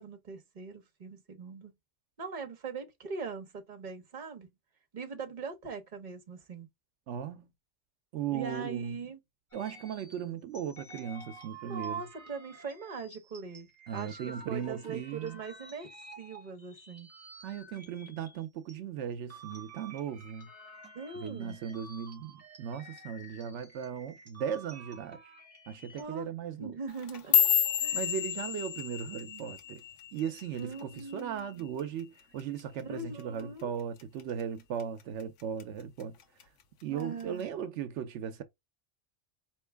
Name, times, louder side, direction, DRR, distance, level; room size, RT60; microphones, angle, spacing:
voice 1, 0.0-1.7 2.2-4.5 4.9-6.7 8.3-9.2 11.7-17.1 20.9-21.6 26.0-26.3 26.6-27.4 27.8-28.1 29.2-29.4 30.6-31.7 32.8-33.7 36.9-37.5, right 5 dB, 45° right, 1.0 m, -41 dB
voice 2, 7.1-7.5 8.1-9.0 9.5-12.0 13.9-15.4 17.4-20.5 21.1-25.3 25.7-26.8 27.9-29.8 30.1-36.1 36.8-38.4, right 8 dB, 80° right, 0.9 m, -37 dB
sound 1, 9.5-18.8 19.1-26.0, right 1 dB, 10° right, 2.0 m, -52 dB
sound 2, 26.9-31.3 31.6-32.0 32.4-32.8 33.2-33.4 34.0-34.4 34.8-35.6 36.0-36.4 37.2-37.3, left 9 dB, 85° left, 1.1 m, -30 dB
4.5 x 3.1 x 3.3 m
omnidirectional pair, 1.2 m